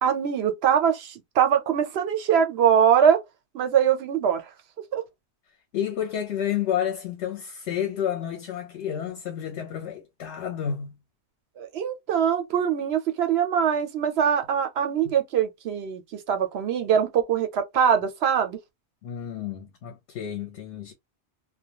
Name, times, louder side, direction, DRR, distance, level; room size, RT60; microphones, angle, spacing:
voice 1, 0.0-3.2 3.5-4.4 4.9-5.0 11.6-18.6, right 8 dB, 70° right, 0.8 m, -22 dB
voice 2, 5.7-10.9 15.0-15.1 19.0-20.9, left 9 dB, 75° left, 0.9 m, -30 dB
2.2 x 2.2 x 2.8 m
omnidirectional pair, 1.2 m